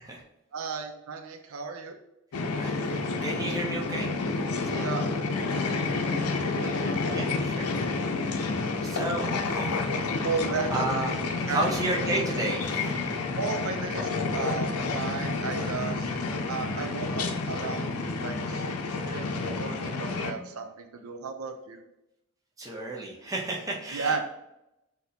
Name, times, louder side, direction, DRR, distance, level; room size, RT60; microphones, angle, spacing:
voice 1, 0.5-2.0 4.7-5.0 5.4-7.0 10.2-10.7 11.5-11.6 13.3-21.8 23.9-24.2, right 5 dB, 75° right, 6 dB, 0.5 m, -35 dB
sound 1, 2.3-20.3, left 3 dB, 90° left, 0.6 m, -30 dB
voice 2, 2.6-4.1 4.6-4.8 7.1-7.8 8.8-10.2 10.7-11.1 11.5-13.2 22.6-24.2, right 2 dB, 15° right, -2 dB, 0.7 m, -32 dB
6.0 x 2.7 x 2.7 m, 0.87 s
head